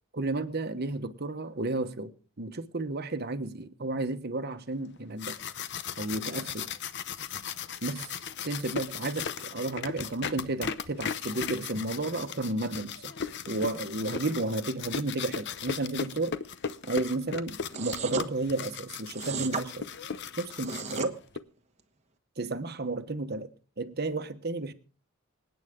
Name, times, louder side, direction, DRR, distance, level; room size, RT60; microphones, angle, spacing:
voice 1, 0.1-5.4 6.0-6.7 7.8-8.1 8.4-13.1 13.5-16.3 16.8-19.9 20.4-21.2 22.4-23.5 23.8-24.7, right 2 dB, 50° right, 1.1 m, -32 dB
sound 1, 5.0-21.4, left 7 dB, 55° left, 0.7 m, -37 dB
sound 2, 17.7-18.3 19.1-19.7 20.5-21.1, right 4 dB, 35° right, 1.1 m, -34 dB
26.0 x 9.1 x 3.7 m
head